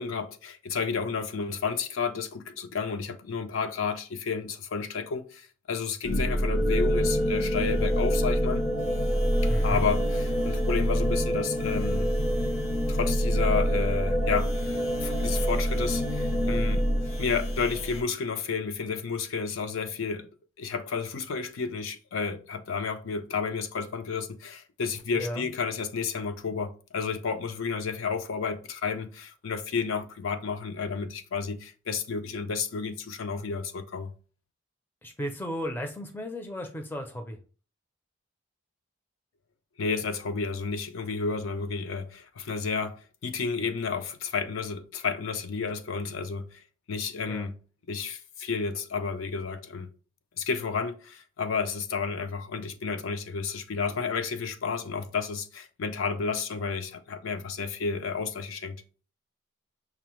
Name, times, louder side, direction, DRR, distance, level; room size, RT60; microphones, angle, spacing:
voice 1, 0.0-8.7 9.6-12.1 12.9-16.8 17.2-20.3 20.6-34.1 39.8-43.0 43.2-46.6 46.9-47.6 47.9-49.9 50.4-58.8, left 5 dB, 75° left, 0.5 m, -31 dB
sound 1, 6.0-18.0, equal, 60° left, 0.9 m, -26 dB
voice 2, 9.5-9.9 25.1-25.5 35.0-37.4 47.3-47.5, equal, 10° left, 0.4 m, -35 dB
5.7 x 2.0 x 3.0 m
head